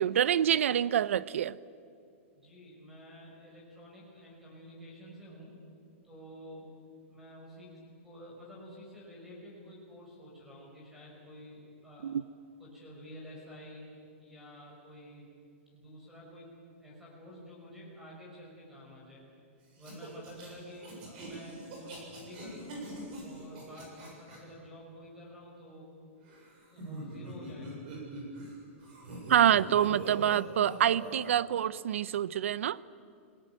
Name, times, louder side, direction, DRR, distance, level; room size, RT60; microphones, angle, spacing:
voice 1, 0.0-1.6 12.0-12.2 29.3-32.8, right 10 dB, 75° right, 0.7 m, -26 dB
voice 2, 2.3-5.6 6.0-6.7 7.1-12.2 12.6-13.9 14.2-15.3 15.7-16.5 16.8-19.2 19.8-22.8 23.2-25.9 26.7-27.8, equal, 5° right, 5.6 m, -50 dB
sound 1, 19.8-24.4 26.2-28.5 28.8-31.3, right 1 dB, 45° right, 7.4 m, -43 dB
27.0 x 18.5 x 9.2 m
supercardioid pair, 170°, 7 cm